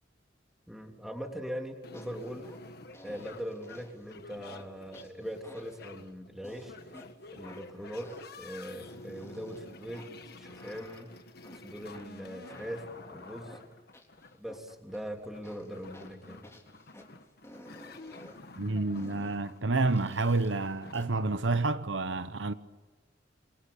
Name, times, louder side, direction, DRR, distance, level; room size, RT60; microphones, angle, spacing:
voice 1, 0.7-2.5 3.0-6.7 7.3-8.1 8.4-11.1 11.6-13.6 14.4-16.5, equal, ahead, 3.4 m, -41 dB
sound 1, 1.8-20.9, left 2 dB, 55° left, 1.6 m, -50 dB
sound 2, 1.9-2.6 2.9-4.1 4.4-4.7 4.9-5.9 6.4-7.1 7.4-9.6 9.9-11.6 11.9-14.6 14.9-15.1 15.4-17.1 17.4-18.4 18.9-19.4 19.9-21.0, left 1 dB, 15° left, 3.7 m, -53 dB
voice 2, 18.6-22.5, right 3 dB, 80° right, 1.0 m, -29 dB
28.5 x 23.0 x 8.7 m
head